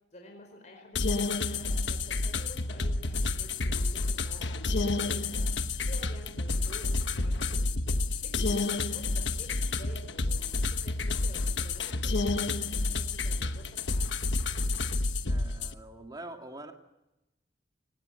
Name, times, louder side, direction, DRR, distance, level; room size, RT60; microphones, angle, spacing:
voice 1, 0.1-5.5 5.9-7.8 8.2-14.1, left 1 dB, 40° left, 2 dB, 4.8 m, -50 dB
sound 1, 1.0-15.7, left 3 dB, 85° left, 1.2 m, -30 dB
voice 2, 15.3-16.7, right 2 dB, 25° right, 3 dB, 2.3 m, -44 dB
25.0 x 20.0 x 9.1 m, 0.96 s
head